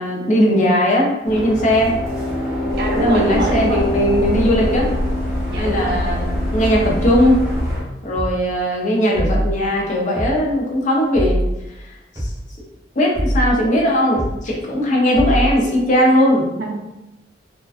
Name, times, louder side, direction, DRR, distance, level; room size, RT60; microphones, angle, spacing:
voice 1, 0.0-1.9 3.0-4.9 5.6-7.4 8.0-11.4 12.2-12.3 13.0-16.5, equal, 45° left, -2 dB, 0.5 m, -18 dB
sound 1, 1.2-7.8, left 1 dB, ahead, 1.0 m, -24 dB
sound 2, 2.7-7.8, equal, 20° left, 0.8 m, -29 dB
voice 2, 2.8-3.9 5.5-6.0 16.6-16.8, right 2 dB, 60° right, 0 dB, 0.5 m, -24 dB
sound 3, 8.2-8.4 9.1-9.5 10.2-10.4 11.1-11.5 12.2-12.4 13.1-13.5 14.2-14.4 15.1-15.5, equal, 20° right, 0.8 m, -21 dB
2.4 x 2.2 x 2.4 m, 0.94 s
head